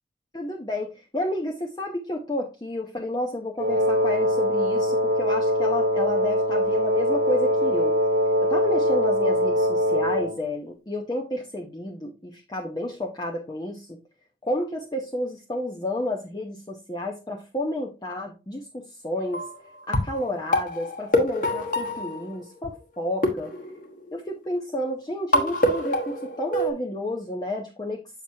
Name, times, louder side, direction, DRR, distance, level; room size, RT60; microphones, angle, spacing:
voice 1, 0.3-8.0 8.4-14.0 14.4-19.5 19.9-23.5 24.1-28.0, left 1 dB, 20° left, 0 dB, 0.7 m, -31 dB
Wind instrument woodwind instrument, 3.6-10.4, equal, 50° right, 1.1 m, -22 dB
sound 1, 19.2-19.5 19.9-22.7 23.2-24.3 25.3-26.7, left 1 dB, 45° left, 1.2 m, -26 dB
7.4 x 5.9 x 2.7 m, 0.28 s
head